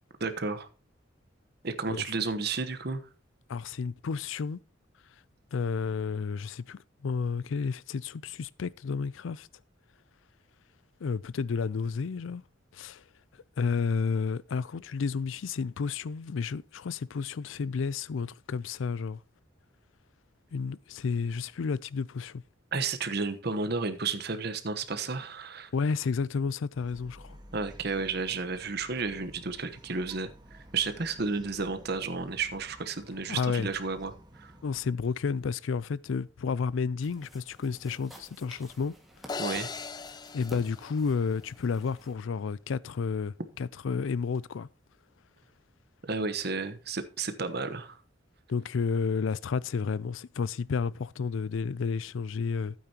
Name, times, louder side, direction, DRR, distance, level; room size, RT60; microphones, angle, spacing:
voice 1, 0.2-0.7 1.6-3.0 22.7-25.7 27.5-34.5 39.4-39.7 46.0-48.0, right 4 dB, 55° right, 1.1 m, -32 dB
voice 2, 3.5-4.6 5.5-9.5 11.0-12.4 12.7-13.0 13.6-19.2 20.5-22.4 25.7-27.4 33.3-33.7 34.6-38.9 40.3-44.7 48.5-52.7, left 5 dB, 80° left, 0.4 m, -31 dB
Bark, 26.7-34.9, equal, 20° right, 1.5 m, -52 dB
sound 1, 37.0-42.1, equal, ahead, 1.8 m, -52 dB
sound 2, 39.3-41.6, left 4 dB, 20° left, 0.4 m, -39 dB
12.5 x 8.6 x 2.9 m
head